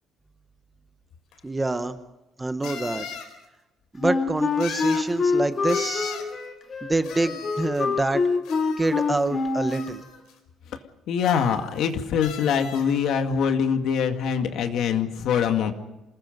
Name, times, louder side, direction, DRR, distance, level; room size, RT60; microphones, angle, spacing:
sound 1, 1.3-1.4 2.6-3.3 4.6-5.1 5.7-6.3 7.0-7.8 8.4-9.3 9.7-10.3 11.2-11.9 12.2-12.9, left 7 dB, 80° left, 4.2 m, -38 dB
voice 1, 1.4-2.0 2.4-3.1 3.9-6.1 6.8-8.2 8.8-10.0, right 2 dB, 10° right, 10 dB, 0.9 m, -26 dB
Wind instrument woodwind instrument, 4.0-9.9, left 4 dB, 30° left, 2.6 m, -25 dB
voice 2, 11.1-15.7, left 7 dB, 60° left, 6 dB, 2.0 m, -24 dB
27.5 x 20.0 x 5.3 m, 1.0 s
cardioid pair, 175°, 0 cm